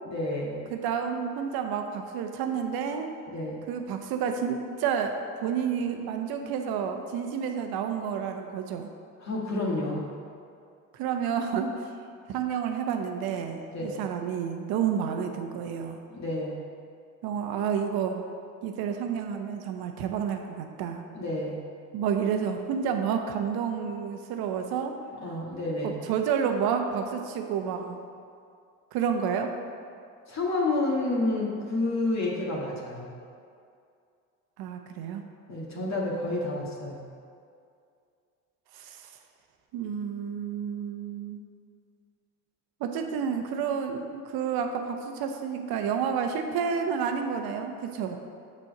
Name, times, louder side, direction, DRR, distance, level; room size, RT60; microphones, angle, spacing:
voice 1, 0.1-0.7 3.3-3.7 9.2-10.1 13.7-14.0 16.1-16.7 21.1-21.6 25.2-26.0 30.3-33.1 35.5-37.1, left 2 dB, 45° left, -3 dB, 1.7 m, -30 dB
voice 2, 0.7-3.1 3.7-5.2 5.4-8.9 10.9-11.9 12.3-16.0 17.2-18.2 18.6-21.0 21.9-24.9 25.8-28.0 28.9-29.5 34.6-35.2 38.7-39.1 39.7-41.4 42.8-48.2, right 7 dB, 70° right, 5 dB, 0.9 m, -30 dB
6.3 x 4.4 x 6.4 m, 2.4 s
hypercardioid pair, 55°, 38 cm